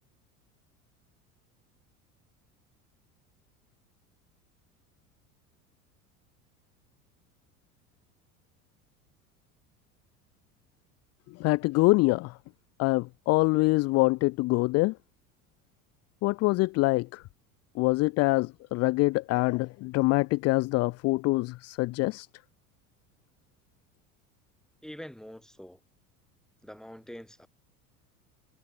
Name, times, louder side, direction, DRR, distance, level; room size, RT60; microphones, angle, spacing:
voice 1, 11.4-12.3 12.8-15.0 16.2-17.2 17.8-22.3, left 22 dB, 35° left, 0.5 m, -25 dB
voice 2, 24.8-25.8 26.6-27.5, equal, ahead, 3.8 m, -45 dB
figure-of-eight pair, 75°, 45 cm